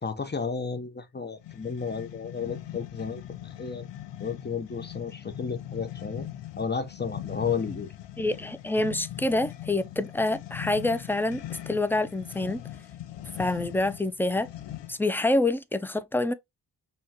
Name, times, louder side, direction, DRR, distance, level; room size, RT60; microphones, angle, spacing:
voice 1, 0.0-3.2 3.6-3.9 4.2-6.3 6.6-7.9, left 5 dB, 25° left, 0.8 m, -32 dB
sound 1, 1.4-15.1, left 12 dB, 75° left, 0.6 m, -41 dB
voice 2, 8.2-12.6 13.4-14.5 14.9-16.3, left 2 dB, 5° left, 0.3 m, -27 dB
5.4 x 2.3 x 2.8 m
cardioid pair, 65°, 44 cm